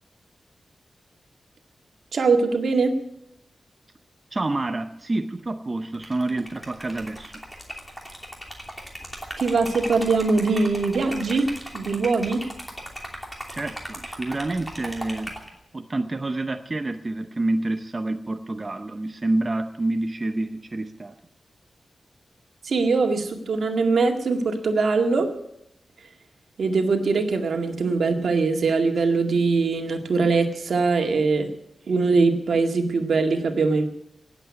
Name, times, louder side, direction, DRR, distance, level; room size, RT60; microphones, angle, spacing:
voice 1, 2.1-3.0 9.4-12.4 22.6-25.3 26.0-26.1 26.6-31.5 31.9-33.8, right 4 dB, 70° right, 4 dB, 2.0 m, -22 dB
voice 2, 4.3-7.4 13.5-15.3 15.7-21.2, right 2 dB, 25° right, 6 dB, 0.7 m, -28 dB
Liquid, 5.9-15.5, equal, 5° left, 2.9 m, -37 dB
18.0 x 8.1 x 9.8 m, 0.79 s
wide cardioid pair, 165°, 0 cm